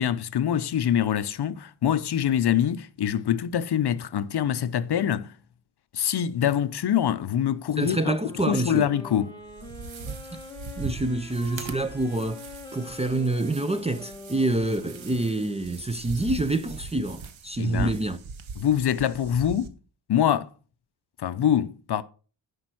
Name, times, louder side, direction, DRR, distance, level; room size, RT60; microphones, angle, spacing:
voice 1, 0.0-5.3 5.9-8.1 8.5-9.3 17.6-17.9 18.6-19.7 20.1-20.5 21.2-22.0, left 9 dB, 60° left, 0.7 m, -24 dB
voice 2, 7.8-8.9 10.3-10.4 10.8-18.2, right 2 dB, 15° right, 0.5 m, -27 dB
sound 1, 8.2-15.9, left 1 dB, 10° left, 1.8 m, -44 dB
sound 2, 9.4-19.7, right 4 dB, 90° right, 1.2 m, -40 dB
10.0 x 5.2 x 6.1 m
wide cardioid pair, 180°, 46 cm